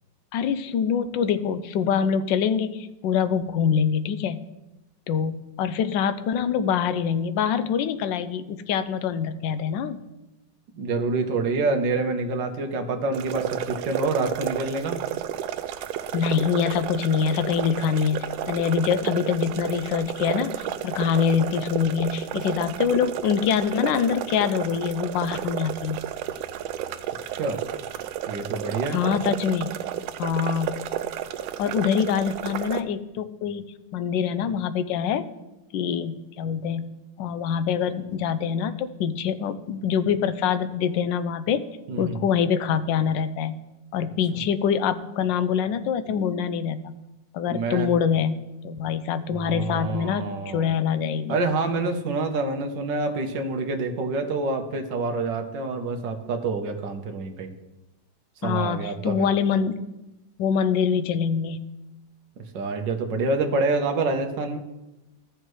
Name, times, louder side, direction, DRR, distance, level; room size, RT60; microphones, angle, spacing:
voice 1, 0.3-4.4 5.1-10.0 16.1-26.0 28.9-29.7 30.2-30.8 31.6-35.3 35.7-36.9 37.2-41.6 42.0-43.6 43.9-47.0 47.3-51.4 58.4-59.8 60.4-61.7, left 7 dB, 75° left, 11 dB, 1.3 m, -25 dB
voice 2, 10.7-15.0 27.4-27.6 28.3-29.0 41.9-42.2 46.1-46.6 47.5-47.9 49.3-50.7 51.3-57.5 58.4-59.3 62.4-64.6, right 3 dB, 70° right, 4 dB, 1.6 m, -27 dB
sound 1, 13.1-32.8, right 11 dB, 90° right, 1.3 m, -32 dB
14.0 x 6.6 x 3.2 m, 0.97 s
omnidirectional pair, 2.0 m